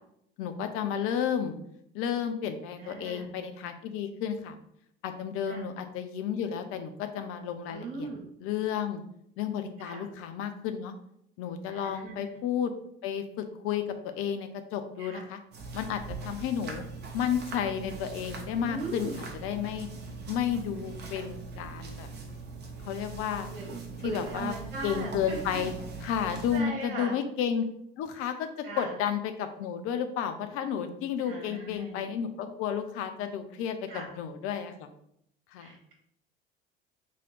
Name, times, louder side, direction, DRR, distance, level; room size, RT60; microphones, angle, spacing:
voice 1, 0.4-1.6 1.9-4.6 5.0-8.1 8.4-9.0 9.4-10.9 11.4-12.7 13.0-15.4 15.7-16.9 17.1-19.9 20.3-22.1 22.8-23.5 24.0-24.5 24.8-25.7 26.0-27.7 28.0-34.9 35.5-35.7, left 8 dB, 50° left, 8 dB, 0.6 m, -32 dB
voice 2, 2.8-3.3 5.5-5.6 7.7-8.3 9.8-10.1 11.7-12.2 15.0-15.2 18.6-19.3 23.5-25.7 26.0-26.1 26.5-27.1 28.6-29.0 31.2-32.1 33.9-34.1 35.6-35.9, right 3 dB, 70° right, -2 dB, 1.1 m, -39 dB
sound 1, 15.5-26.6, right 4 dB, 35° right, 0.9 m, -41 dB
3.1 x 2.8 x 3.9 m, 0.72 s
figure-of-eight pair, 60°, 29 cm